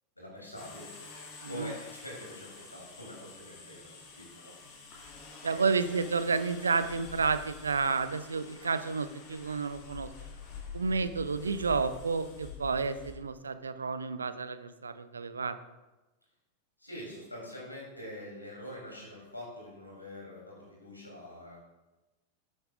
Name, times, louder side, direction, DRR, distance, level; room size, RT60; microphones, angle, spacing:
voice 1, 0.1-0.9 1.5-4.5 5.4-6.1 16.8-21.6, left 1 dB, 85° left, -3 dB, 3.2 m, -45 dB
sound 1, 0.5-13.1, left 5 dB, 40° left, 2.1 m, -48 dB
voice 2, 5.4-10.1 10.7-15.6, right 4 dB, 75° right, 13 dB, 0.5 m, -31 dB
11.5 x 8.9 x 2.5 m, 1.1 s
figure-of-eight pair, 90°, 0 cm